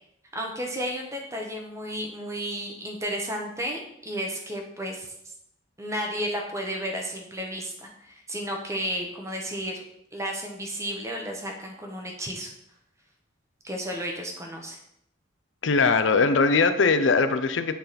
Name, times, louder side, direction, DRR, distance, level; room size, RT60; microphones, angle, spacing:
voice 1, 0.3-5.1 5.8-9.8 10.1-12.5 13.6-14.8, equal, 15° right, 1 dB, 1.1 m, -33 dB
voice 2, 15.6-17.7, left 4 dB, 70° left, 10 dB, 0.6 m, -21 dB
9.1 x 4.0 x 4.1 m, 0.75 s
head